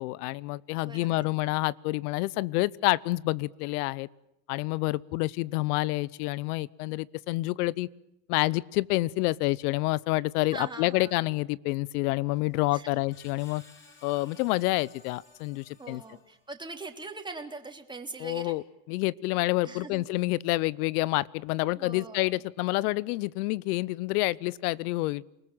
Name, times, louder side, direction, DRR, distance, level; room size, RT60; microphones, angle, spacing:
voice 1, 0.0-4.1 4.5-7.9 8.3-13.6 14.0-16.0 18.2-25.2, left 20 dB, 80° left, 24 dB, 1.0 m, -28 dB
voice 2, 0.8-1.3 10.4-11.1 12.7-13.0 15.8-18.6 19.6-20.1 21.7-22.4, right 3 dB, 10° right, 4 dB, 3.6 m, -42 dB
Screech, 12.3-16.6, left 3 dB, 25° left, 7.9 m, -57 dB
28.5 x 20.0 x 9.0 m, 0.83 s
supercardioid pair, 105°, 44 cm